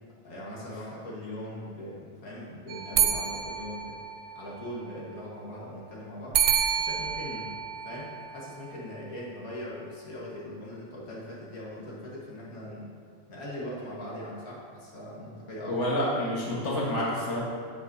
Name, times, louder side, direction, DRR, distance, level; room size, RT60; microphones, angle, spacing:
voice 1, 0.2-4.0 4.3-6.4 6.7-7.6 7.8-12.9 13.3-15.8, left 1 dB, 80° left, -5 dB, 2.0 m, -40 dB
sound 1, 2.7-4.7 6.3-8.7, right 9 dB, 70° right, 0.5 m, -29 dB
voice 2, 15.7-17.4, left 1 dB, 55° left, -5 dB, 1.8 m, -28 dB
15.5 x 5.2 x 2.8 m, 2.3 s
omnidirectional pair, 1.5 m